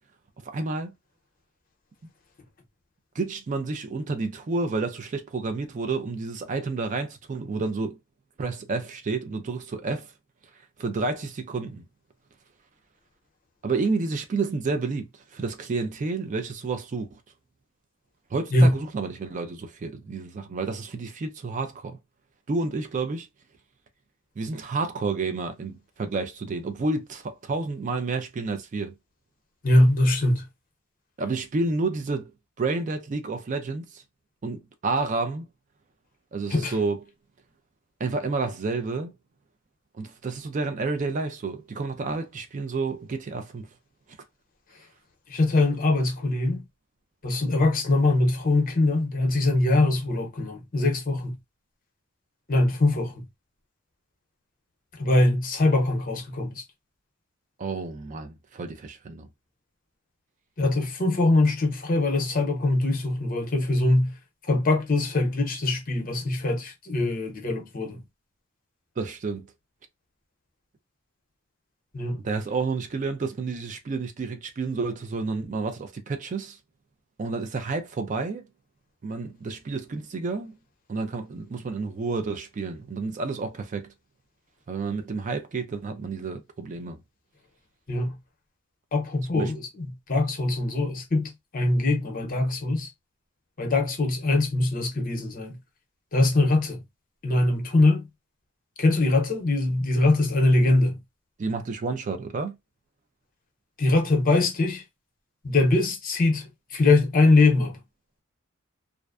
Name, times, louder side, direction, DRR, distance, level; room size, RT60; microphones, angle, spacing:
voice 1, 0.4-0.9 3.2-8.0 8.4-10.1 10.8-11.8 13.6-17.1 18.3-22.0 22.5-23.3 24.4-28.9 31.2-32.3 32.6-34.0 34.4-35.5 36.3-37.0 38.0-39.1 40.0-43.7 57.6-59.3 69.0-69.5 72.2-76.6 77.2-78.4 79.0-80.5 80.9-83.9 84.7-87.0 89.3-89.5 101.4-102.6, right 3 dB, 40° right, 0.4 m, -30 dB
voice 2, 29.6-30.5 36.5-36.7 45.3-46.6 47.2-51.4 52.5-53.2 55.0-56.6 60.6-64.2 64.5-68.0 71.9-72.2 87.9-88.2 88.9-92.9 93.6-95.6 96.1-96.8 97.2-98.1 98.8-101.0 103.8-104.8 105.4-107.8, left 2 dB, 45° left, 0.8 m, -22 dB
2.4 x 2.2 x 2.3 m
head